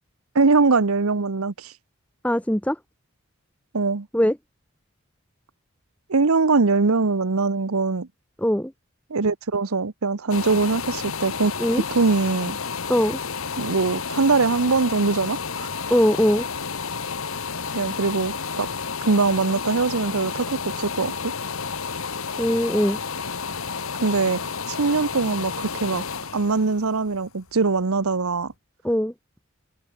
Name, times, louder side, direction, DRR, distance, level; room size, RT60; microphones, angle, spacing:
voice 1, 0.3-1.7 3.7-4.1 6.1-8.1 9.1-11.5 11.9-12.6 13.6-15.7 17.7-18.7 19.0-21.3 24.0-24.4 24.7-26.0 26.3-28.5, right 4 dB, 90° right, 1.0 m, -22 dB
voice 2, 2.2-2.8 4.1-4.4 8.4-8.7 11.6-11.8 12.9-13.2 15.9-16.5 22.4-23.0 28.8-29.1, equal, 5° left, 1.4 m, -21 dB
sound 1, 10.3-28.0 28.5-28.6, left 5 dB, 80° left, 1.6 m, -31 dB
head